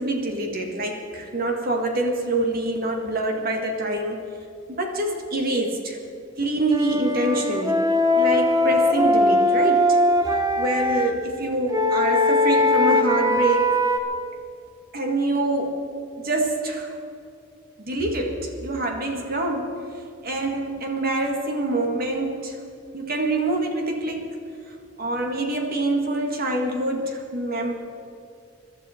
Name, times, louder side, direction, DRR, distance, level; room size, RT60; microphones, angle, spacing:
voice 1, 0.0-4.2 4.7-6.0 6.4-7.8 8.2-10.0 10.3-13.8 14.9-15.8 16.2-16.9 17.8-19.8 20.2-22.6 22.9-24.4 25.0-27.7, right 2 dB, 50° right, 2 dB, 1.9 m, -25 dB
Wind instrument woodwind instrument, 6.7-11.1 11.7-14.0, left 1 dB, 20° right, 1.0 m, -20 dB
23.0 x 12.5 x 4.4 m, 2.4 s
head